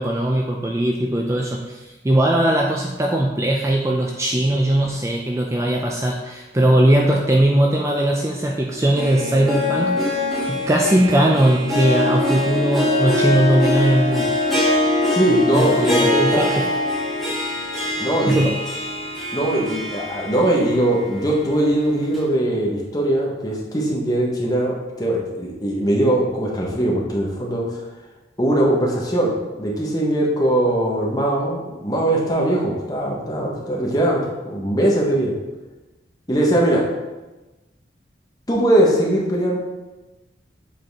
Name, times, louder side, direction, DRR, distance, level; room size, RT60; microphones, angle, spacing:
voice 1, 0.0-10.2 10.5-14.3 15.3-16.7 18.3-18.6, right 1 dB, 15° right, 0 dB, 0.4 m, -19 dB
Harp, 8.7-20.8 21.2-21.3 22.1-22.2, left 1 dB, ahead, 1.4 m, -23 dB
voice 2, 15.1-16.5 18.0-18.5 19.3-27.8 28.4-35.3 36.3-36.8 38.5-39.6, right 1 dB, 20° left, -3 dB, 1.1 m, -20 dB
7.6 x 4.2 x 3.5 m, 1.1 s
head